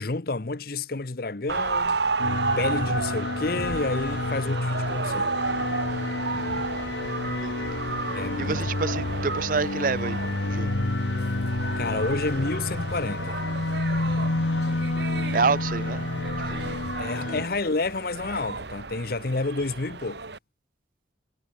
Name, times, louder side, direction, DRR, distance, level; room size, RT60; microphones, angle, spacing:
voice 1, 0.0-2.0 2.6-5.3 8.1-8.6 11.8-13.4 17.0-20.2, left 3 dB, 50° left, 0.9 m, -29 dB
sound 1, 1.5-20.4, right 4 dB, 65° right, 1.4 m, -33 dB
sound 2, 2.2-17.5, left 2 dB, 75° left, 1.2 m, -29 dB
sound 3, 5.1-17.1, equal, 85° right, 5.9 m, -51 dB
voice 2, 8.4-10.8 15.3-16.1 16.5-16.7 17.3-17.5, right 5 dB, 45° right, 0.5 m, -28 dB
head